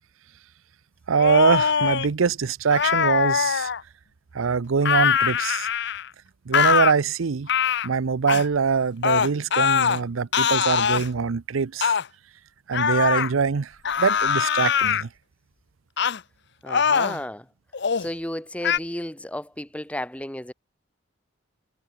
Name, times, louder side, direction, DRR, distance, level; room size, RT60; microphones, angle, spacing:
sound 1, 1.1-2.1 2.7-3.8 4.8-6.1 6.5-6.9 7.5-7.9 8.3-8.4 9.0-10.0 10.3-11.1 11.8-12.1 12.7-13.3 13.8-15.0 16.0-16.2 16.7-17.2 17.7-18.1 18.6-18.8, left 7 dB, 60° left, 0.7 m, -22 dB
voice 1, 1.1-3.7 4.3-5.7 6.5-7.5 7.8-11.9 12.7-13.7 14.0-15.1, right 5 dB, 90° right, 0.6 m, -23 dB
voice 2, 16.6-17.5 18.0-20.5, left 1 dB, 5° left, 1.5 m, -33 dB
head